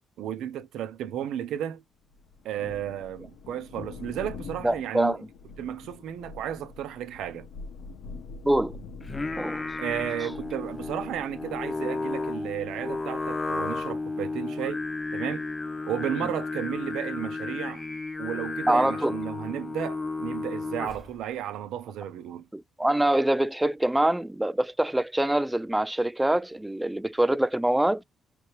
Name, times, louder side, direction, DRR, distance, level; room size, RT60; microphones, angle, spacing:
voice 1, 0.2-1.8 2.4-5.2 5.6-7.5 9.8-14.8 15.1-15.5 15.9-17.8 18.2-22.4, right 10 dB, 85° right, 0.7 m, -33 dB
Thunder, 2.1-15.3, left 4 dB, 80° left, 1.1 m, -45 dB
voice 2, 4.6-5.2 8.4-8.8 9.4-9.8 18.7-19.1 22.5-28.0, right 1 dB, 10° right, 0.3 m, -24 dB
Singing, 9.0-21.2, left 3 dB, 25° left, 0.8 m, -33 dB
3.4 x 3.1 x 3.1 m
cardioid pair, 90°, 0 cm